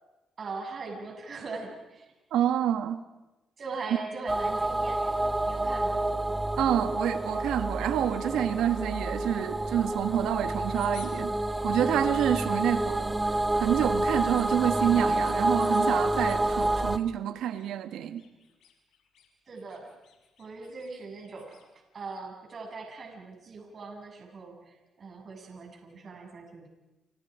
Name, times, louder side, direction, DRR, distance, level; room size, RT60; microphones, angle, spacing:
voice 1, 0.4-2.1 3.6-6.4 12.6-13.0 19.5-19.9 20.4-21.7 21.9-26.7, right 4 dB, 50° right, 1 dB, 7.4 m, -41 dB
voice 2, 2.3-3.0 6.6-11.3 11.6-18.2, right 10 dB, 85° right, 9 dB, 1.7 m, -28 dB
sound 1, 4.3-17.0, right 1 dB, 15° right, 1.1 m, -28 dB
sound 2, 10.5-11.1 11.5-12.3 12.7-13.4 13.7-14.6 14.9-15.8 16.2-16.9 17.4-17.7 17.9-19.3 19.5-21.6, left 9 dB, 80° left, 5.9 m, -55 dB
29.5 x 29.0 x 5.1 m, 1.0 s
cardioid pair, 75°, 0 cm